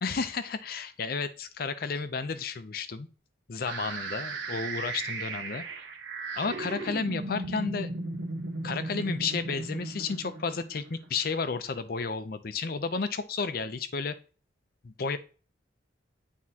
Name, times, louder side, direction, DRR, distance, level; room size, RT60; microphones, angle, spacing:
voice 1, 0.0-3.1 3.5-5.6 6.4-7.9 8.6-14.2 14.8-15.2, left 4 dB, 50° left, 12 dB, 0.5 m, -32 dB
sound 1, 3.7-11.6, right 2 dB, 75° right, 1.1 m, -36 dB
9.4 x 3.6 x 2.8 m, 0.36 s
head